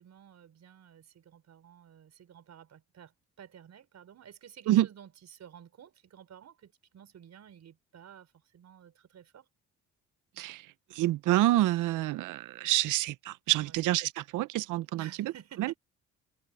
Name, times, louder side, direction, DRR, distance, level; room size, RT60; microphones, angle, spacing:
voice 1, 0.0-9.5 13.6-13.8 15.0-15.8, right 9 dB, 60° right, 5.6 m, -53 dB
voice 2, 10.9-14.9 15.6-15.7, right 15 dB, 85° right, 0.7 m, -27 dB
cardioid pair, 90°, 30 cm